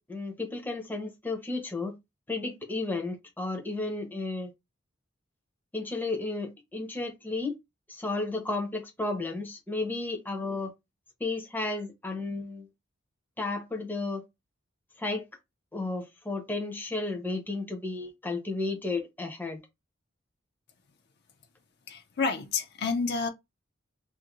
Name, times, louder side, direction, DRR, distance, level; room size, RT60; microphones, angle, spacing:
voice 1, 0.0-1.9 2.3-4.5 5.7-7.5 7.9-10.7 11.2-12.7 13.4-14.2 15.0-15.3 15.7-19.6, left 3 dB, 10° left, 0.6 m, -33 dB
voice 2, 21.9-23.3, left 4 dB, 55° left, 0.5 m, -29 dB
2.6 x 2.5 x 2.9 m
head